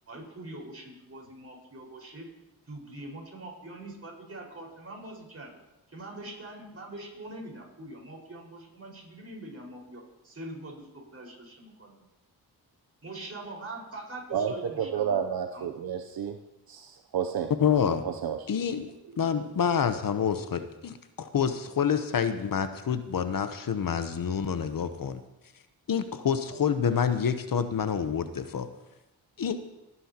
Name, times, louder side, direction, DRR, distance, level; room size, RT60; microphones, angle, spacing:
voice 1, 0.1-2.3 2.7-5.5 5.9-12.1 13.0-15.2 15.5-15.7, right 2 dB, 40° right, -2 dB, 4.9 m, -43 dB
voice 2, 14.3-16.4 16.7-17.5 18.0-18.4, right 8 dB, 65° right, 6 dB, 0.7 m, -30 dB
voice 3, 17.6-18.0 18.5-18.9 19.2-25.2 25.9-28.7 29.4-29.6, left 7 dB, 60° left, 10 dB, 0.9 m, -27 dB
19.0 x 9.8 x 2.9 m, 0.97 s
cardioid pair, 60°, 39 cm